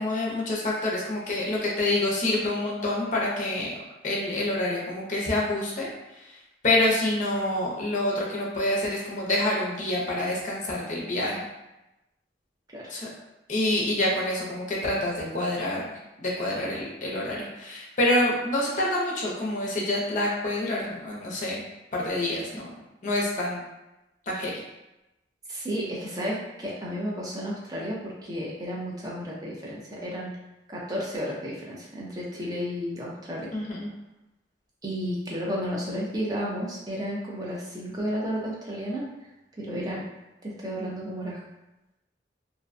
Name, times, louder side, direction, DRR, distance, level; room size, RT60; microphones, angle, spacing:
voice 1, 0.0-3.7 4.0-6.4 6.6-11.4 12.9-13.1 13.5-21.6 21.9-22.7 23.0-23.6 24.3-24.5 33.5-33.9, left 1 dB, 40° left, -3 dB, 0.6 m, -27 dB
voice 2, 25.5-30.3 30.7-33.5 34.8-39.1 39.6-40.1 40.4-41.4, equal, 20° right, -4 dB, 0.5 m, -32 dB
2.5 x 2.1 x 2.5 m, 0.97 s
head